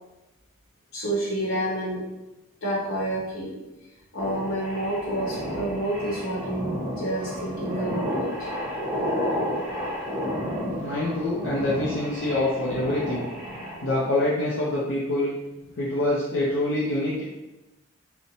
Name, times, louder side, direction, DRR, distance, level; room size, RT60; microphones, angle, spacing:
voice 1, 0.9-2.0 2.6-3.5 4.1-8.9 13.5-13.6, right 1 dB, 90° left, -6 dB, 1.0 m, -29 dB
sound 1, 4.2-14.1, equal, 10° right, 0.7 m, -31 dB
voice 2, 10.8-13.3 13.8-15.3 15.8-17.2, left 1 dB, 65° left, -7 dB, 0.5 m, -25 dB
2.5 x 2.0 x 2.9 m, 0.99 s
head